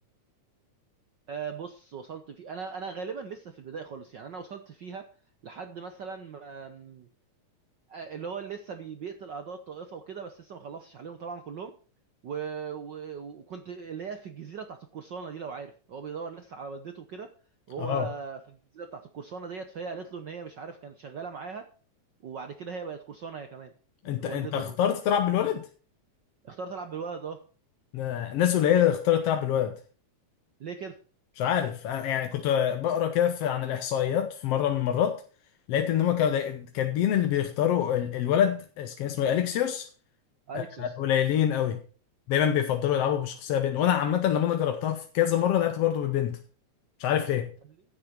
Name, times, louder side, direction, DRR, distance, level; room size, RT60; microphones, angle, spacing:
voice 1, 1.3-5.1 5.4-7.1 7.9-11.8 12.2-17.3 17.7-21.7 22.2-23.7 24.0-24.8 26.4-27.5 30.6-31.0 36.0-36.1 40.5-40.9, right 5 dB, 65° right, 1.1 m, -39 dB
voice 2, 24.1-25.7 27.9-29.8 31.4-35.2 35.7-39.9 40.5-41.8 42.3-46.4 47.0-47.5, left 10 dB, 65° left, 1.9 m, -25 dB
15.5 x 9.1 x 4.4 m
omnidirectional pair, 3.3 m